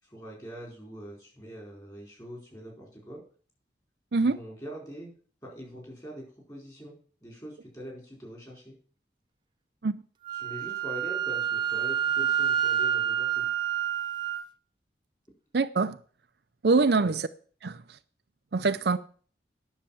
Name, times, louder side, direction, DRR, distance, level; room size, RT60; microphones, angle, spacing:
voice 1, 0.0-3.2 4.2-5.1 5.4-7.0 7.2-8.8 10.3-13.5 17.0-17.2, equal, 20° left, 4.6 m, -43 dB
Wind instrument woodwind instrument, 10.3-14.4, right 9 dB, 25° right, 0.7 m, -28 dB
voice 2, 15.5-16.0 16.6-17.3 17.6-17.8 18.5-19.0, right 3 dB, 65° right, 0.5 m, -24 dB
10.0 x 6.7 x 7.2 m
head